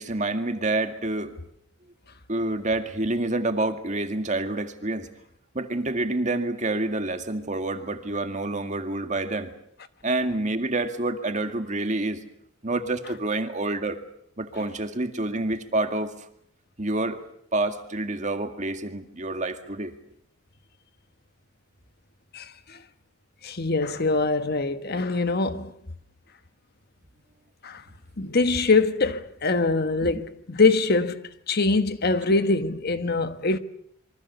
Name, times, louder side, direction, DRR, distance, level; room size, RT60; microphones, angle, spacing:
voice 1, 0.0-1.4 2.3-5.1 5.5-9.5 10.0-12.2 12.6-14.0 14.4-16.1 16.8-17.2 17.5-19.9 30.0-30.1, right 2 dB, 35° right, 2.1 m, -28 dB
voice 2, 22.3-22.8 23.4-25.7 27.6-27.8 28.2-33.6, left 3 dB, 50° left, 1.4 m, -23 dB
27.0 x 24.0 x 6.9 m
head